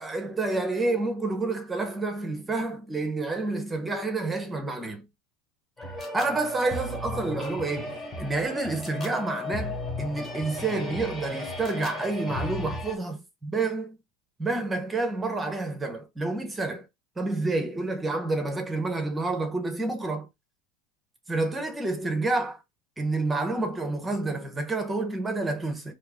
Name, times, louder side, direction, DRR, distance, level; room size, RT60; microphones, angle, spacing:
voice 1, 0.0-5.0 6.1-14.0 14.4-16.8 17.2-20.3 21.3-22.6 23.0-25.9, right 3 dB, 10° right, 0.6 m, -29 dB
sound 1, 5.8-13.0, left 2 dB, 20° left, 1.2 m, -35 dB
3.7 x 2.6 x 3.4 m
supercardioid pair, 150°, 0 cm